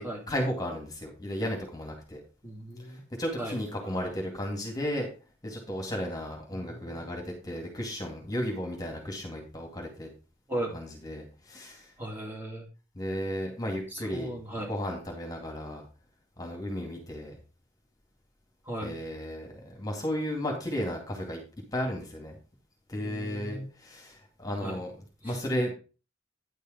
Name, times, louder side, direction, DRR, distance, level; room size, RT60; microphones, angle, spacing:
voice 1, 0.3-2.2 2.9-5.1 5.4-10.1 10.7-11.9 12.9-15.8 16.4-17.4 18.8-21.4 21.7-22.4 22.9-24.9 25.2-25.7, equal, 20° left, 1 dB, 2.3 m, -34 dB
voice 2, 2.4-3.0 3.4-3.5 6.5-7.0 10.5-10.8 12.0-12.7 13.9-14.7 18.7-19.0 23.0-23.7 24.6-24.8 25.2-25.4, right 1 dB, 10° right, -2 dB, 2.6 m, -37 dB
10.0 x 5.4 x 5.2 m, 0.34 s
head